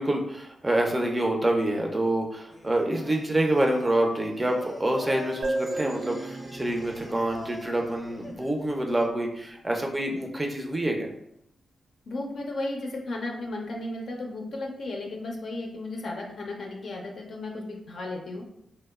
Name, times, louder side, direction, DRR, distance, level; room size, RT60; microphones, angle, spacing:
voice 1, 0.0-11.1, right 1 dB, 25° right, 1 dB, 0.4 m, -27 dB
Singing, 2.5-9.1, left 2 dB, 20° left, 0.6 m, -44 dB
sound 1, 5.4-9.0, right 2 dB, 70° right, 0.6 m, -35 dB
voice 2, 12.1-18.4, left 2 dB, 70° left, 0 dB, 0.5 m, -34 dB
2.8 x 2.1 x 2.2 m, 0.78 s
cardioid pair, 60°, 0 cm